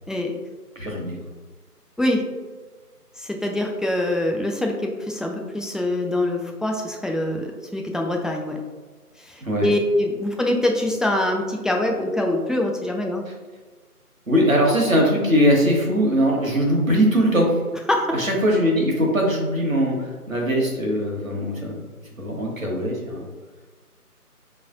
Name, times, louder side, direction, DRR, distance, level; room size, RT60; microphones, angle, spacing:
voice 1, 0.7-1.2 9.4-9.7 14.3-17.6 18.1-21.8 22.2-23.3, equal, 55° right, -1 dB, 1.1 m, -21 dB
voice 2, 3.2-8.6 9.2-13.2 17.9-18.1, left 1 dB, ahead, 1 dB, 0.3 m, -24 dB
4.6 x 3.1 x 2.5 m, 1.4 s
figure-of-eight pair, 175°, 47 cm